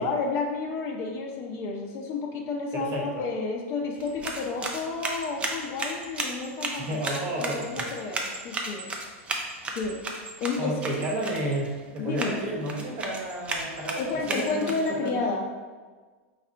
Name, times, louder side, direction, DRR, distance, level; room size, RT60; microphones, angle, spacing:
voice 1, 0.0-7.0 7.4-8.9 9.7-10.0 10.4-10.8 12.0-12.4 13.9-15.5, left 4 dB, 40° left, 1 dB, 0.6 m, -31 dB
voice 2, 2.7-3.2 6.8-7.9 10.6-14.0 14.3-15.2, right 1 dB, 35° right, -2 dB, 1.2 m, -32 dB
sound 1, 3.9-15.1, right 2 dB, 15° right, 0.5 m, -35 dB
4.8 x 3.4 x 2.8 m, 1.4 s
supercardioid pair, 140°, 7 cm